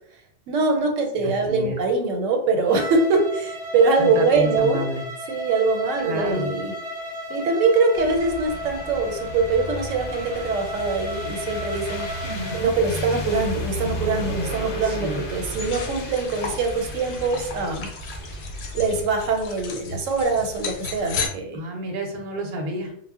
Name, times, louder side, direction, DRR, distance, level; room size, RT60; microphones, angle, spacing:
voice 1, 0.5-4.9 5.3-6.7 7.3-12.1 12.5-18.2 18.7-21.6, right 3 dB, 85° right, 3 dB, 1.0 m, -23 dB
voice 2, 1.2-1.8 4.0-5.0 6.0-6.5 12.2-12.7 14.8-15.3 21.5-22.9, right 1 dB, 55° right, 2 dB, 0.7 m, -30 dB
Bowed string instrument, 2.6-12.7, left 1 dB, 5° right, 0.8 m, -34 dB
sound 1, 7.9-19.5, equal, 55° left, 0.7 m, -34 dB
sound 2, 15.4-21.3, left 4 dB, 85° left, 0.9 m, -34 dB
2.1 x 2.0 x 3.5 m, 0.67 s
omnidirectional pair, 1.3 m